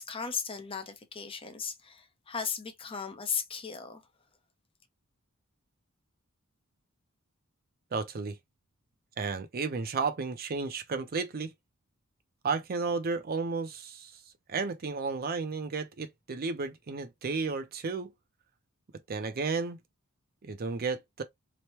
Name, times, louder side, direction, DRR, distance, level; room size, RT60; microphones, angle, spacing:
voice 1, 0.0-4.0, left 6 dB, 25° left, 0.7 m, -36 dB
voice 2, 7.9-8.4 9.2-11.5 12.4-14.1 14.5-18.1 19.1-19.8 20.4-21.2, right 4 dB, 45° right, 0.5 m, -33 dB
3.0 x 2.1 x 2.9 m
head